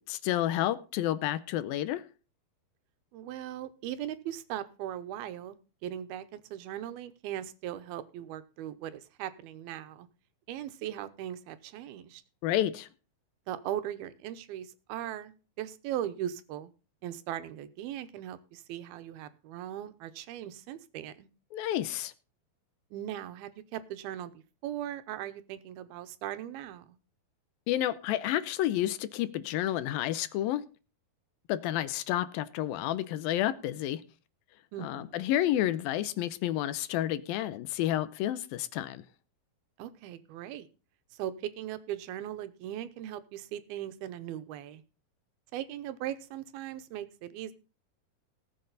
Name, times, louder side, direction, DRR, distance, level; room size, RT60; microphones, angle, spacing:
voice 1, 0.1-2.0 12.4-12.9 21.5-22.1 27.7-30.6 31.5-34.0 34.8-39.0, left 13 dB, 80° left, 2.5 m, -30 dB
voice 2, 3.1-5.6 5.8-10.1 10.5-12.2 13.5-16.7 17.0-21.3 22.9-27.0 34.7-35.2 39.8-40.7 41.1-44.8 45.5-47.5, right 11 dB, 85° right, 2.8 m, -39 dB
18.5 x 7.6 x 4.0 m
omnidirectional pair, 4.3 m